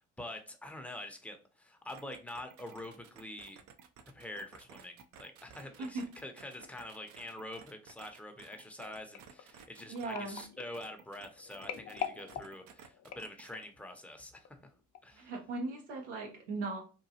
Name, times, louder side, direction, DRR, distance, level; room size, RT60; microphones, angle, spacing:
voice 1, 0.2-3.6 4.1-14.7 15.0-15.3, left 1 dB, 5° left, 5 dB, 0.6 m, -46 dB
sound 1, 1.9-10.5 10.7-13.6, right 7 dB, 60° right, 0.5 m, -55 dB
sound 2, 8.8-13.9 14.5-14.7 15.0-15.1, left 8 dB, 50° left, 0.5 m, -44 dB
voice 2, 9.9-10.4 15.1-16.8, right 3 dB, 90° right, 1 dB, 0.8 m, -38 dB
2.9 x 2.3 x 2.7 m, 0.35 s
hypercardioid pair, 60°, 35 cm